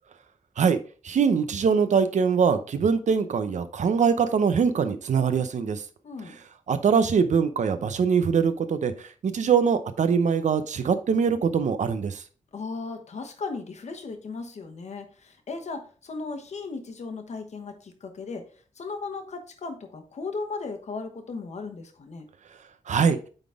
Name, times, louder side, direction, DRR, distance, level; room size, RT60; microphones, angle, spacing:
voice 1, 1.0-5.8 6.7-8.9 9.2-12.2 22.9-23.2, right 6 dB, 65° right, 11 dB, 0.7 m, -23 dB
voice 2, 6.0-6.4 12.5-18.5 18.8-22.2, left 4 dB, 60° left, 6 dB, 1.2 m, -36 dB
8.8 x 4.0 x 3.6 m, 0.39 s
wide cardioid pair, 165°, 13 cm